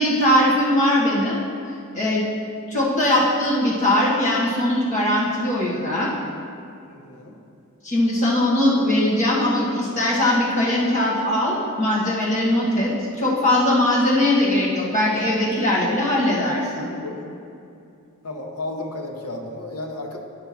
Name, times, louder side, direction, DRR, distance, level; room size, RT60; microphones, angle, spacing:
voice 1, 0.0-1.4 1.9-2.2 2.7-6.1 7.8-16.9, left 1 dB, 35° left, -6 dB, 1.6 m, -20 dB
voice 2, 6.9-7.4 16.9-17.2 18.2-20.2, left 2 dB, 85° left, 2 dB, 0.9 m, -33 dB
9.7 x 3.5 x 5.7 m, 2.5 s
head